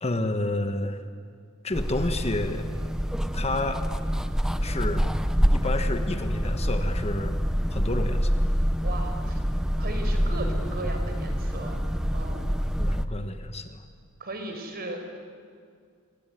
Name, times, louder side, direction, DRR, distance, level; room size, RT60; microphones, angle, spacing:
voice 1, 0.0-1.0 1.6-2.7 3.3-3.8 4.6-5.1 5.5-7.4 7.7-8.5 12.8-13.8, left 2 dB, 30° left, 8 dB, 1.3 m, -30 dB
sound 1, 1.7-13.1, equal, 5° right, 0.9 m, -26 dB
voice 2, 8.8-9.4 9.8-11.8 12.1-12.5 14.2-15.2, right 2 dB, 45° right, 5 dB, 5.0 m, -37 dB
28.5 x 22.0 x 9.4 m, 2.2 s
head